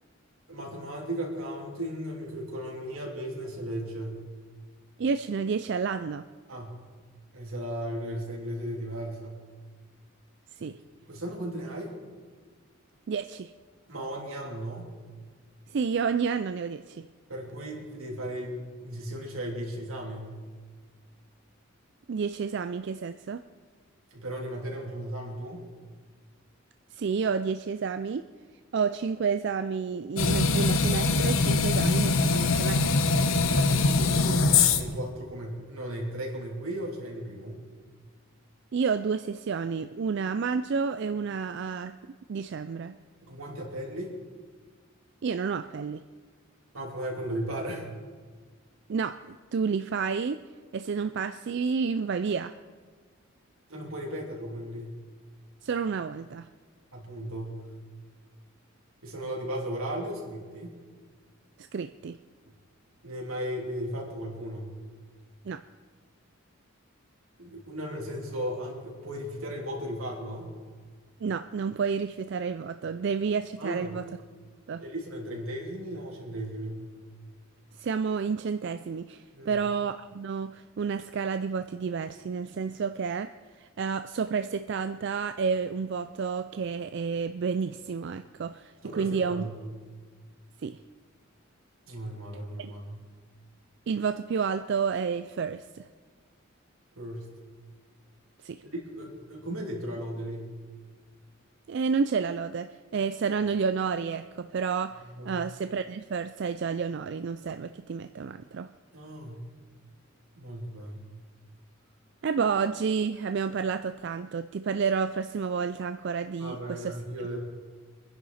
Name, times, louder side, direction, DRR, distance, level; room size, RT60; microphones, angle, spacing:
voice 1, 0.5-4.2 6.5-6.8 7.3-9.4 11.1-11.9 13.9-14.9 17.3-20.3 24.1-25.6 33.5-37.6 43.2-44.1 46.7-47.8 53.7-55.0 56.9-57.6 59.0-60.7 63.0-64.7 67.4-70.5 73.6-74.0 74.8-76.8 79.3-79.6 88.8-89.7 91.9-93.0 97.0-97.3 98.7-100.5 105.2-105.4 108.9-109.5 110.3-111.1 116.4-117.4, right 1 dB, 85° right, -1 dB, 3.3 m, -36 dB
voice 2, 5.0-6.3 10.5-10.8 13.1-13.5 15.7-17.1 22.1-23.4 26.9-28.3 28.7-33.1 38.7-42.0 42.3-43.0 45.2-46.0 48.9-50.4 50.7-52.6 55.6-56.5 61.6-62.2 65.4-65.6 71.2-74.0 74.7-74.8 77.8-89.5 90.6-90.8 92.6-92.7 93.9-95.9 98.4-98.6 101.7-108.7 112.2-117.0, right 5 dB, 55° right, 10 dB, 0.4 m, -30 dB
sound 1, 30.2-35.0, left 3 dB, 75° left, 0.9 m, -23 dB
25.5 x 10.5 x 4.2 m, 1.5 s
head